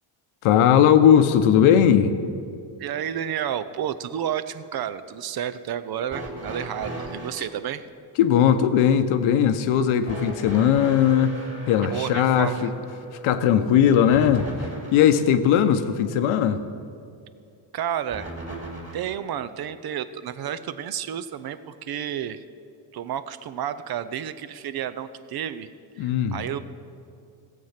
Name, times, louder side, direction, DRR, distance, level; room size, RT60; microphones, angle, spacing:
voice 1, 0.4-2.1 8.2-11.4 11.7-12.7 13.2-14.5 14.9-16.6 26.0-26.4, left 9 dB, 80° left, 9 dB, 0.9 m, -18 dB
voice 2, 2.8-7.9 11.9-12.7 17.7-18.3 18.9-22.4 22.9-25.7 26.0-26.6, right 9 dB, 50° right, 12 dB, 0.6 m, -31 dB
sound 1, 6.1-7.5 10.1-15.2 18.1-19.2 20.4-20.5 21.5-21.6, right 1 dB, 25° right, 2.8 m, -37 dB
16.5 x 7.6 x 5.8 m, 2.4 s
cardioid pair, 115°, 48 cm